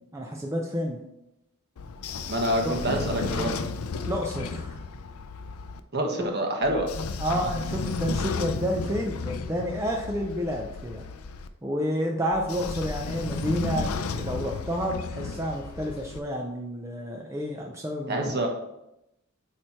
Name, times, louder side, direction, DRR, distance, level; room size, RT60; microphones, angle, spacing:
voice 1, 0.1-1.0 2.6-2.7 4.0-4.8 6.2-6.3 7.2-11.0 11.6-18.3, equal, 15° right, 0 dB, 0.6 m, -30 dB
Train / Sliding door, 1.8-5.8 6.6-11.5 12.3-16.2, left 4 dB, 75° left, 0.5 m, -33 dB
voice 2, 2.3-3.5 5.9-6.9 18.1-18.5, right 1 dB, 50° right, 2 dB, 1.3 m, -26 dB
8.6 x 3.3 x 4.4 m, 0.86 s
head